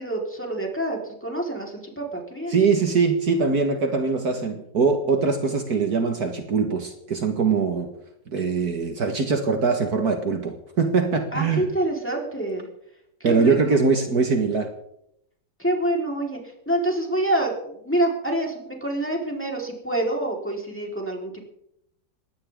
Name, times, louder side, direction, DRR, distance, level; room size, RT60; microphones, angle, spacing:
voice 1, 0.0-2.6 11.3-12.7 13.2-13.6 15.6-16.4 16.7-21.5, right 1 dB, 5° left, -1 dB, 4.2 m, -27 dB
voice 2, 2.5-7.9 8.3-11.7 13.2-14.7, right 5 dB, 60° right, 5 dB, 2.1 m, -22 dB
20.5 x 17.5 x 3.8 m, 0.76 s
omnidirectional pair, 1.9 m